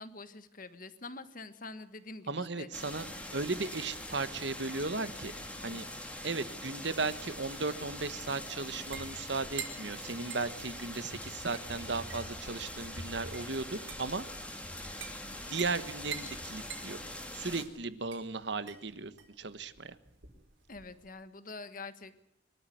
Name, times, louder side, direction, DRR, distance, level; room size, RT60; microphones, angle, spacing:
voice 1, 0.0-2.7 5.6-5.9 20.7-22.2, left 3 dB, 45° left, 12 dB, 1.4 m, -46 dB
voice 2, 2.3-5.3 5.6-5.8 6.2-14.3 15.3-17.0 17.3-19.9, right 3 dB, 60° right, 13 dB, 1.3 m, -36 dB
sound 1, 2.7-17.6, left 1 dB, 5° left, 2.4 m, -43 dB
sound 2, 7.8-21.0, right 6 dB, 75° right, 4.7 m, -48 dB
24.0 x 13.0 x 9.3 m, 0.83 s
head